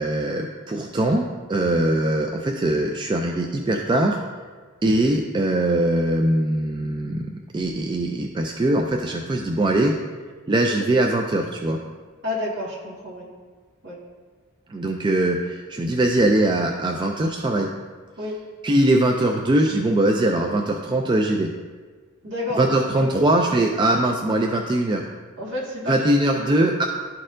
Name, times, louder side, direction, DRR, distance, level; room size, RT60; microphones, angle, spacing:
voice 1, 0.0-4.2 4.8-9.9 10.5-11.8 14.7-17.7 18.6-21.5 22.6-25.0 25.9-26.8, right 1 dB, 20° right, 2 dB, 0.3 m, -21 dB
voice 2, 12.2-13.3 13.8-14.0 18.2-18.3 22.2-23.4 25.4-26.0 26.3-26.7, left 1 dB, 60° right, -4 dB, 1.8 m, -30 dB
11.5 x 4.2 x 2.5 m, 1.5 s
head